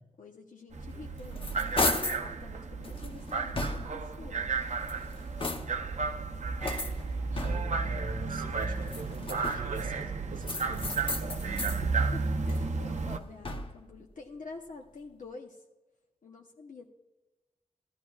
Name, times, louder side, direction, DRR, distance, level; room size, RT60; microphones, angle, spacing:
voice 1, 0.2-4.5 11.8-11.9 12.1-15.6 16.2-16.9, left 3 dB, 70° left, 0 dB, 0.9 m, -48 dB
sound 1, 0.7-13.2, right 4 dB, 55° right, 0.6 m, -33 dB
sound 2, 0.9-2.3 2.8-4.1 4.7-5.9 6.6-7.9 8.8-9.8 10.4-11.8 12.2-13.9, left 2 dB, 40° left, 0.8 m, -35 dB
voice 2, 7.3-11.8, right 3 dB, 80° right, 4 dB, 1.1 m, -43 dB
14.5 x 12.5 x 2.4 m, 1.1 s
wide cardioid pair, 90°, 14 cm